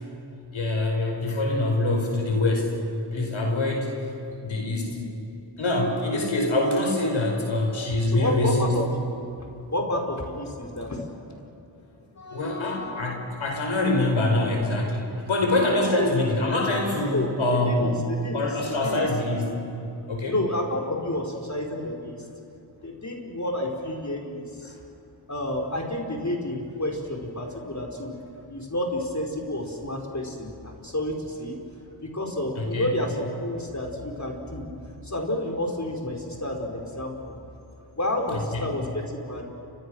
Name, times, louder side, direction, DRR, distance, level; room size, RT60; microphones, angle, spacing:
voice 1, 0.5-2.7 3.1-4.1 4.4-5.0 5.6-8.7 12.3-18.0 18.3-19.6 20.1-20.4 24.6-24.7 32.6-32.9 38.3-38.7, left 2 dB, 80° left, 1 dB, 5.0 m, -25 dB
voice 2, 8.1-8.8 9.7-11.3 12.2-13.2 16.0-16.1 17.1-17.3 17.7-17.9 18.2-18.5 18.8-19.0 20.3-22.2 22.8-24.7 25.3-28.1 28.5-31.6 32.0-34.7 35.0-37.3 37.8-39.4, left 1 dB, 35° left, 0 dB, 5.1 m, -30 dB
29.5 x 25.0 x 6.5 m, 2.8 s
cardioid pair, 40°, 47 cm